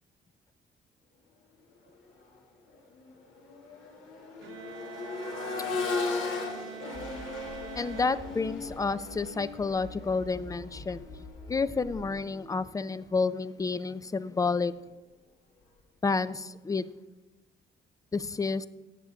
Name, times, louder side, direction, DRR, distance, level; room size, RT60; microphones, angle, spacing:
Accelerating revving vroom, 2.1-2.3 2.7-12.6 14.3-14.4, left 3 dB, 80° left, 2.2 m, -37 dB
Bowed string instrument, 4.4-8.9, right 9 dB, 75° right, 0.9 m, -45 dB
sound 1, 6.9-12.1, left 2 dB, 45° left, 2.5 m, -47 dB
voice 1, 7.8-11.1 11.5-14.7 16.0-16.9 18.1-18.7, left 4 dB, 15° left, 16 dB, 0.5 m, -30 dB
17.5 x 7.2 x 3.6 m, 1.1 s
cardioid pair, 90°, 20 cm